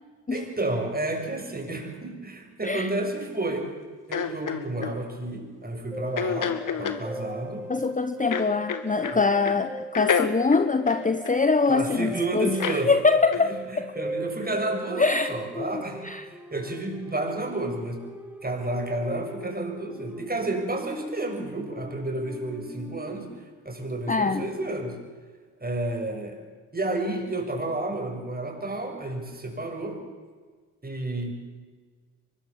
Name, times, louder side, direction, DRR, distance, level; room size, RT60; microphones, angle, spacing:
voice 1, 0.3-3.7 4.1-7.7 9.1-9.3 11.7-12.9 13.5-18.1 18.4-23.3 23.6-25.0 25.6-26.4 26.7-30.0 30.8-31.3, right 2 dB, 20° right, 3 dB, 6.8 m, -31 dB
sound 1, 4.1-5.0 6.2-7.0 8.3-9.2 9.4-9.6 9.9-11.7 12.6-12.9 13.3-13.5, left 7 dB, 45° left, 2.1 m, -28 dB
sound 2, 5.9-23.3, right 1 dB, 5° right, 2.3 m, -39 dB
voice 2, 7.7-12.5 12.9-13.9 15.0-16.3 24.1-24.4, left 4 dB, 15° left, 11 dB, 1.1 m, -24 dB
24.0 x 21.5 x 7.4 m, 1.5 s
hypercardioid pair, 45°, 44 cm